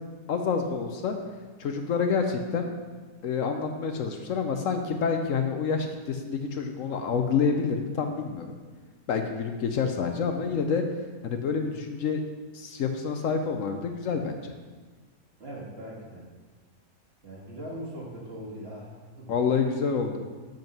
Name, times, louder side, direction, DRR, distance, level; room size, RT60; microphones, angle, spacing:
voice 1, 0.3-1.1 1.6-2.7 3.2-8.6 9.1-10.8 11.2-12.2 12.5-14.5 19.3-20.2, left 5 dB, 70° left, 5 dB, 1.0 m, -28 dB
voice 2, 15.4-16.3 17.2-19.3 20.0-20.1, right 1 dB, 45° right, -4 dB, 2.0 m, -40 dB
7.4 x 5.3 x 5.3 m, 1.3 s
omnidirectional pair, 1.5 m